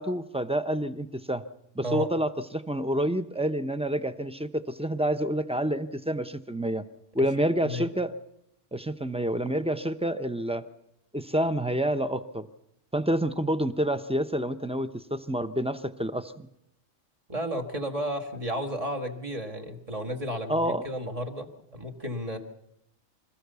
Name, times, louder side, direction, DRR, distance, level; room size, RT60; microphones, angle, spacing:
voice 1, 0.0-1.4 1.8-6.8 7.1-8.1 8.7-10.6 11.1-12.5 12.9-16.5 20.5-20.8, right 1 dB, 5° right, 10 dB, 0.5 m, -28 dB
voice 2, 17.3-22.4, equal, 30° right, 3 dB, 2.0 m, -33 dB
26.0 x 15.0 x 6.9 m, 0.85 s
omnidirectional pair, 1.3 m